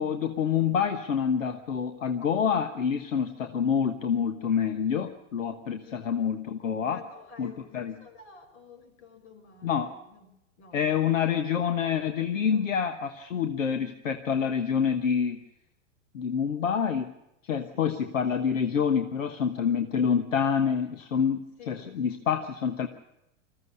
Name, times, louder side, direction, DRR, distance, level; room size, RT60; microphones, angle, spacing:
voice 1, 0.0-7.0 7.4-7.9 9.6-9.9 10.7-15.4 16.1-17.1 17.5-22.9, left 7 dB, 85° left, 8 dB, 1.3 m, -27 dB
voice 2, 6.9-10.3 10.6-11.3 12.5-12.8 17.7-18.0 21.6-22.0, left 3 dB, 60° left, 6 dB, 5.5 m, -51 dB
20.5 x 15.0 x 9.5 m, 0.85 s
hypercardioid pair, 110°, 38 cm